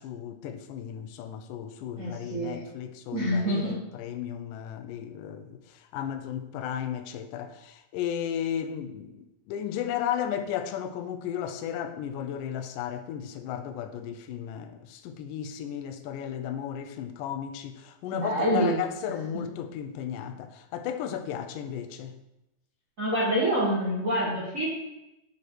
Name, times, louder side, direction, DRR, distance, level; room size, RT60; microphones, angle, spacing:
voice 1, 0.0-22.2, left 9 dB, 80° left, 8 dB, 2.1 m, -34 dB
voice 2, 2.0-2.6 3.1-3.8 18.2-18.8 23.0-24.7, equal, 90° right, -5 dB, 0.7 m, -26 dB
8.5 x 4.9 x 4.6 m, 0.92 s
omnidirectional pair, 3.9 m